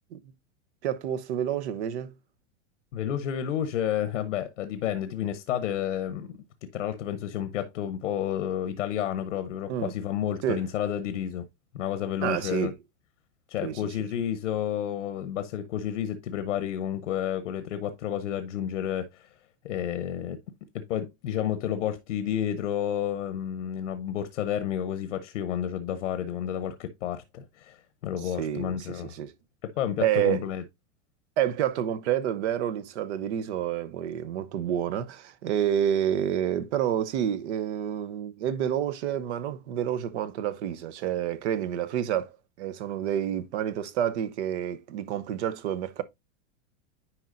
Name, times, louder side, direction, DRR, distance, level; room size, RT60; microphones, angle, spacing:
voice 1, 0.8-2.1 9.7-9.9 10.4-10.6 12.2-12.7 13.6-13.8 28.4-29.3 30.0-30.5 31.4-42.3 42.6-46.0, right 10 dB, 70° right, 0.9 m, -29 dB
voice 2, 2.9-6.3 6.7-11.4 11.7-12.7 13.5-19.3 19.6-20.4 20.7-29.1 29.6-30.6, left 10 dB, 90° left, 0.9 m, -30 dB
10.0 x 4.5 x 2.5 m
supercardioid pair, 135°, 36 cm